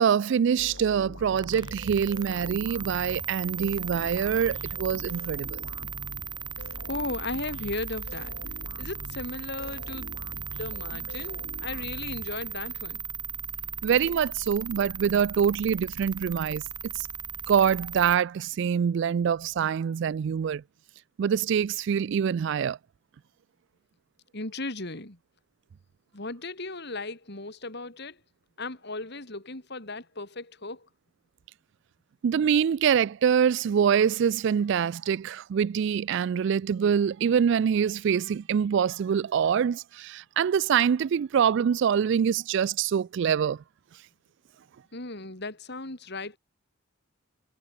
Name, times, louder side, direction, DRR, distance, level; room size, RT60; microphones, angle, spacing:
voice 1, 0.0-5.6 13.8-16.6 17.5-20.6 21.2-22.8 32.2-43.6, right 7 dB, 60° right, 0.3 m, -25 dB
sound 1, 0.6-12.8, left 1 dB, 70° left, 7.5 m, -43 dB
sound 2, 1.4-18.2, right 7 dB, 20° right, 4.7 m, -37 dB
voice 2, 6.9-8.3 8.8-13.0 24.3-25.2 26.1-28.2 28.6-30.9 44.9-46.4, left 2 dB, 55° left, 3.5 m, -36 dB
head